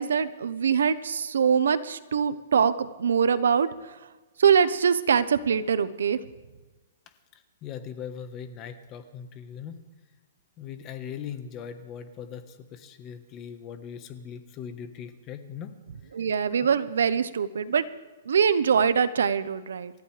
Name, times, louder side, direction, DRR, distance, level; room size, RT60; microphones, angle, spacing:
voice 1, 0.0-4.0 4.4-6.2 16.1-17.8 18.3-19.9, right 7 dB, 85° right, 14 dB, 1.0 m, -23 dB
voice 2, 7.3-9.8 10.6-15.7 16.0-16.1, left 8 dB, 25° left, 8 dB, 1.3 m, -40 dB
28.0 x 14.0 x 3.4 m, 1.2 s
hypercardioid pair, 160°, 0 cm